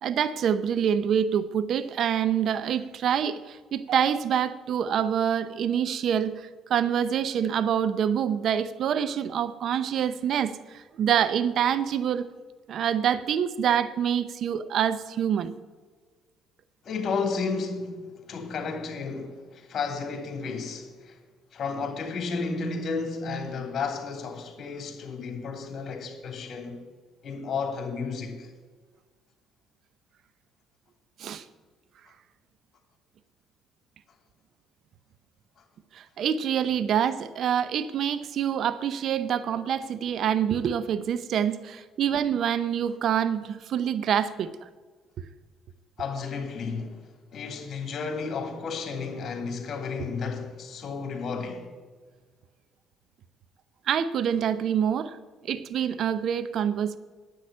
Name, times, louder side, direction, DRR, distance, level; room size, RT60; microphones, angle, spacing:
voice 1, 0.0-12.3 12.7-15.5 31.2-31.4 35.9-44.5 53.9-55.2 55.4-57.0, right 8 dB, 60° right, 0.7 m, -26 dB
voice 2, 16.8-21.2 21.5-26.8 27.2-28.5 46.0-51.7, left 4 dB, 50° left, 2.9 m, -32 dB
10.0 x 8.3 x 8.5 m
hypercardioid pair, 60°, 0 cm